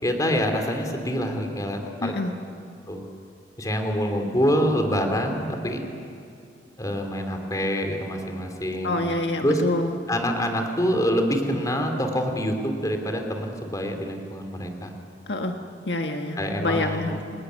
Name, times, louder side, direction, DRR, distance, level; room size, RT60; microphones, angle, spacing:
voice 1, 0.0-2.1 2.9-3.0 3.6-5.8 6.8-9.0 9.4-9.6 10.1-14.9 16.4-17.2, equal, 20° left, 4 dB, 3.2 m, -26 dB
voice 2, 1.7-2.3 8.8-10.0 15.3-15.6 15.8-17.2, left 2 dB, 70° left, 4 dB, 1.7 m, -27 dB
30.0 x 19.5 x 9.6 m, 2.4 s
head